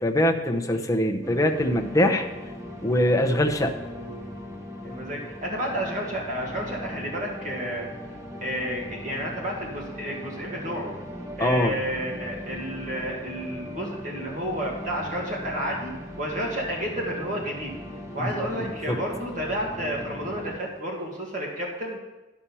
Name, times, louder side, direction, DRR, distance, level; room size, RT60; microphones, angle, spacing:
voice 1, 0.0-2.3 2.8-3.7 11.4-11.7 18.2-19.0, left 1 dB, 20° left, 4 dB, 0.8 m, -23 dB
sound 1, 1.2-20.6, equal, 15° right, 1.2 m, -39 dB
voice 2, 3.9-4.2 4.8-7.9 8.4-10.9 11.4-17.7 18.1-22.0, equal, 45° right, -2 dB, 1.8 m, -31 dB
11.0 x 6.0 x 5.5 m, 1.1 s
head